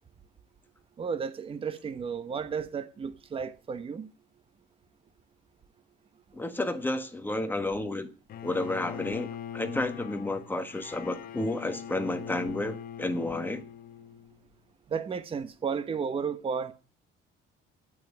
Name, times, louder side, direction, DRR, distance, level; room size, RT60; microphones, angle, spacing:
voice 1, 1.0-4.1 14.9-16.7, right 6 dB, 25° right, 1.0 m, -33 dB
voice 2, 6.3-8.1 8.4-9.3 9.5-13.6, left 2 dB, 10° left, 1.5 m, -31 dB
Bowed string instrument, 8.3-14.4, left 8 dB, 50° left, 0.9 m, -42 dB
9.7 x 9.2 x 9.9 m
cardioid pair, 150°, 20 cm